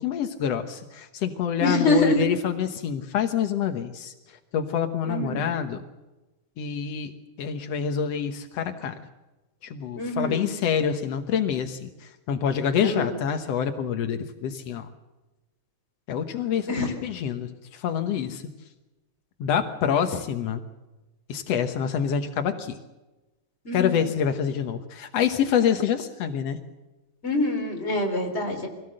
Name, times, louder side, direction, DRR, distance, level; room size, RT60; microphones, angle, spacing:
voice 1, 0.0-4.1 4.5-5.8 6.6-7.1 7.4-9.0 9.6-14.9 16.1-16.7 17.0-18.4 19.4-20.6 21.3-22.7 23.7-26.6, left 8 dB, 85° left, 7 dB, 1.4 m, -26 dB
voice 2, 1.6-2.3 5.0-5.5 10.0-10.5 12.8-13.1 16.7-16.9 23.7-24.0 27.2-28.7, left 2 dB, 15° left, 2 dB, 3.5 m, -25 dB
24.0 x 17.0 x 7.7 m, 1.1 s
omnidirectional pair, 4.7 m